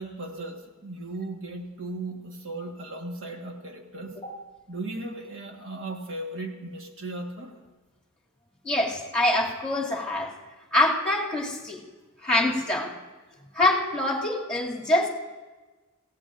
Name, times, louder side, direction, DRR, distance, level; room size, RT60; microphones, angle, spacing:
voice 1, 0.0-4.2 4.7-7.6, right 2 dB, 60° right, 2 dB, 1.5 m, -36 dB
voice 2, 8.6-10.3 10.7-11.8 12.2-12.9 13.5-15.1, left 1 dB, 5° left, -4 dB, 2.3 m, -25 dB
26.5 x 16.5 x 2.5 m, 1.2 s
head